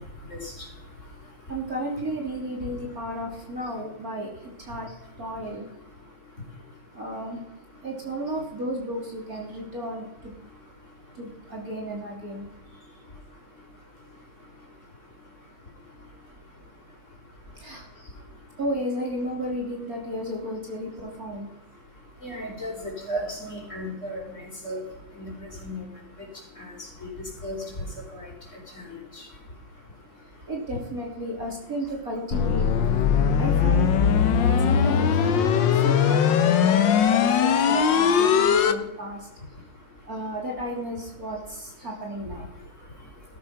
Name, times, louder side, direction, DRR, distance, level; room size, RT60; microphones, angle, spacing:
voice 1, 1.5-4.3 4.6-4.9 5.2-5.7 6.9-7.4 7.8-10.4 11.2-12.5 17.6-17.9 18.6-21.5 30.5-32.7 33.4-33.9 34.3-39.3 40.0-42.4, right 1 dB, 40° right, -1 dB, 3.4 m, -33 dB
voice 2, 22.2-24.2 24.6-24.8 25.2-25.3 25.6-25.8 27.0-27.1 27.4-27.6 28.1-28.2, equal, 35° left, -1 dB, 5.3 m, -33 dB
sound 1, 32.3-38.7, left 7 dB, 65° left, 1.6 m, -20 dB
17.0 x 13.0 x 5.8 m, 0.84 s
omnidirectional pair, 2.4 m